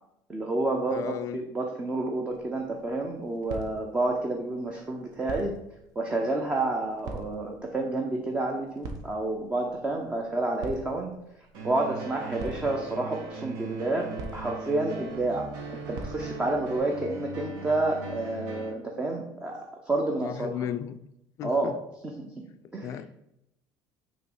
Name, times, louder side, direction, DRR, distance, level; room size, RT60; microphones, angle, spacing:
voice 1, 0.3-5.5 6.0-11.1 11.6-14.1 14.3-19.6 19.9-20.5 21.4-21.7 22.2-22.3 22.7-22.9, right 2 dB, 15° right, 1 dB, 0.6 m, -29 dB
voice 2, 0.9-1.4 20.2-21.0 21.4-21.8 22.8-23.1, left 10 dB, 40° left, 12 dB, 0.4 m, -34 dB
sound 1, 2.3-16.8, right 2 dB, 50° right, 0.9 m, -45 dB
sound 2, 11.5-18.7, right 3 dB, 65° right, 1.5 m, -39 dB
6.2 x 3.0 x 5.4 m, 0.81 s
cardioid pair, 165°, 8 cm